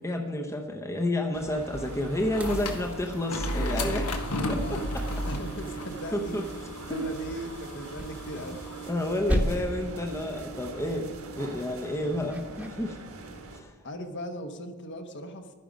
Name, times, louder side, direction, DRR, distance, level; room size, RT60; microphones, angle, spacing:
voice 1, 0.0-4.1 4.5-5.2 6.1-6.4 6.9-7.1 8.8-13.0 13.5-13.8, left 1 dB, 15° left, 2 dB, 0.7 m, -30 dB
sound 1, 1.3-13.6, right 3 dB, 65° right, 1.6 m, -42 dB
sound 2, 1.7-8.9, left 1 dB, 90° left, 1.4 m, -34 dB
sound 3, 2.4-3.7 5.0-6.1 7.9-9.0 9.3-10.0 12.3-12.7, equal, 5° right, 1.1 m, -33 dB
voice 2, 4.5-4.9 5.2-6.4 6.9-8.6 13.8-15.5, equal, 50° left, 6 dB, 1.1 m, -38 dB
12.5 x 10.5 x 5.1 m, 1.4 s
head